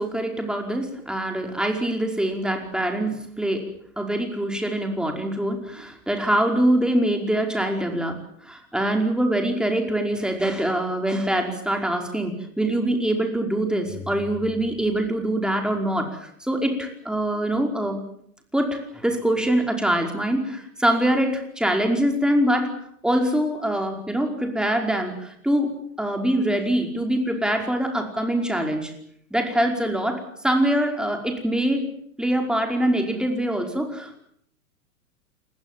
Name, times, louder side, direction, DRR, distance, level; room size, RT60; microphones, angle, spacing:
voice 1, 0.0-3.6 4.0-18.0 18.5-22.7 23.0-25.7 26.0-29.0 29.3-31.8 32.2-34.2, right 1 dB, ahead, 3 dB, 5.1 m, -24 dB
29.0 x 22.0 x 7.7 m, 0.68 s
figure-of-eight pair, 100°, 43 cm